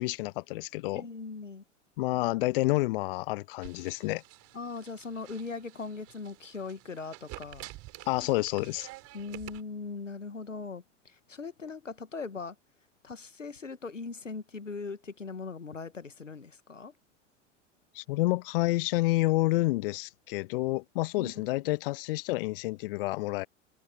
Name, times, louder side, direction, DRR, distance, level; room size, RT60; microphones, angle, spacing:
voice 1, 0.0-1.1 2.0-4.2 8.1-8.9 17.9-23.5, left 20 dB, 50° left, 0.8 m, -29 dB
voice 2, 0.9-1.6 4.5-7.7 9.1-12.6 13.0-16.9 21.2-21.5, left 4 dB, 80° left, 1.6 m, -40 dB
sound 1, 3.6-9.6, right 20 dB, 40° right, 5.9 m, -49 dB
figure-of-eight pair, 85°, 37 cm